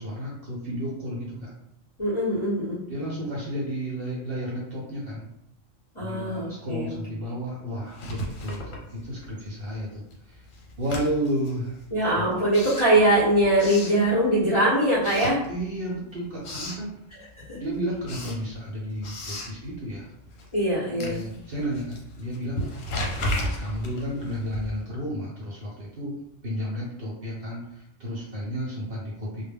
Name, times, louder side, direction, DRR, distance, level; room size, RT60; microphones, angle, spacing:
voice 1, 0.0-1.5 2.9-5.2 6.0-10.0 10.3-10.4 10.8-11.8 12.1-12.3 15.5-16.9 17.6-20.1 20.9-22.6 23.1-26.1 26.4-29.5, equal, 55° right, -5 dB, 0.8 m, -32 dB
voice 2, 2.0-2.8 6.0-7.0 11.9-15.4 17.5-17.6 20.5-21.2, right 1 dB, 30° left, -9 dB, 0.6 m, -22 dB
Writing, 7.9-9.5 9.8-14.6 15.0-15.9 16.2-16.9 17.3-25.0, left 1 dB, 85° left, 1.0 m, -35 dB
2.2 x 2.1 x 3.3 m, 0.76 s
omnidirectional pair, 1.3 m